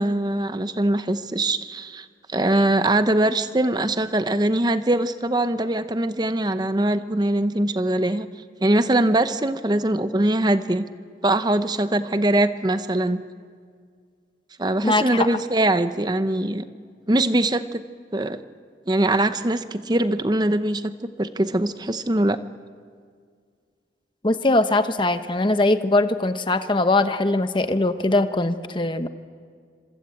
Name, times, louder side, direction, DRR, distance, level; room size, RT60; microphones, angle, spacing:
voice 1, 0.0-8.3 8.6-10.9 11.2-13.2 14.6-16.6 17.1-17.8 18.1-18.4 18.9-22.4, right 1 dB, 25° right, 11 dB, 0.8 m, -22 dB
voice 2, 14.8-15.3 24.2-29.1, left 2 dB, 25° left, 9 dB, 1.0 m, -21 dB
26.0 x 23.5 x 8.6 m, 2.1 s
head